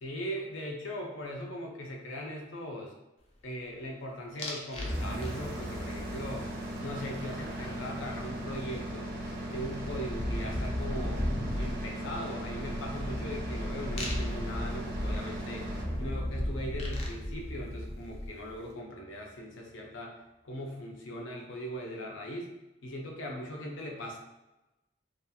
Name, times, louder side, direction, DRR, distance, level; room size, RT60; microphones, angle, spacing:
voice 1, 0.0-2.9 3.4-6.5 6.8-9.1 9.5-11.2 11.6-15.7 16.0-20.1 20.4-22.5 22.8-24.2, equal, 85° left, 0 dB, 0.6 m, -39 dB
sound 1, 4.4-4.9 5.2-5.7 8.1-8.2 8.5-18.5, left 1 dB, 35° left, 0.4 m, -36 dB
sound 2, 4.7-18.7, right 1 dB, 45° right, 0.8 m, -38 dB
2.8 x 2.4 x 2.3 m, 0.99 s
head